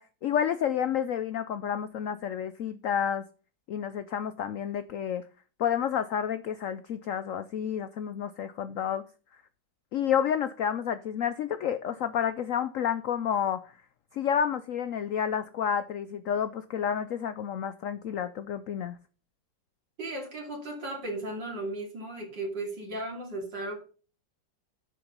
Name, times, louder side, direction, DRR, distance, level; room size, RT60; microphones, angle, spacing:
voice 1, 0.0-3.2 3.7-5.2 5.6-9.0 9.9-13.7 14.1-19.0, left 8 dB, 85° left, 0.7 m, -30 dB
voice 2, 20.0-23.8, right 2 dB, 70° right, 3.5 m, -36 dB
7.8 x 7.1 x 5.2 m
omnidirectional pair, 2.0 m